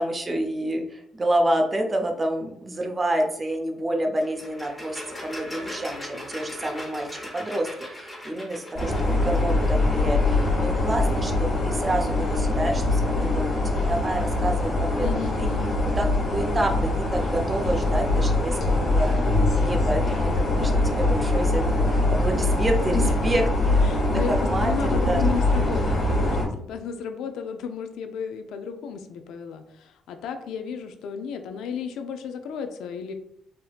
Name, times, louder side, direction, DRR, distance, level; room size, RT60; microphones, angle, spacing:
voice 1, 0.0-13.5 13.9-15.5 16.0-16.1 16.3-25.2, right 1 dB, 25° right, 3 dB, 0.5 m, -28 dB
sound 1, 4.2-9.8, left 1 dB, 20° left, 0.8 m, -39 dB
sound 2, 8.7-26.4, left 2 dB, 50° left, 1.3 m, -23 dB
voice 2, 15.0-15.8 23.0-23.3 23.9-33.1, left 6 dB, 85° left, 7 dB, 0.3 m, -34 dB
3.3 x 2.8 x 2.3 m, 0.71 s
cardioid pair, 90°, 0 cm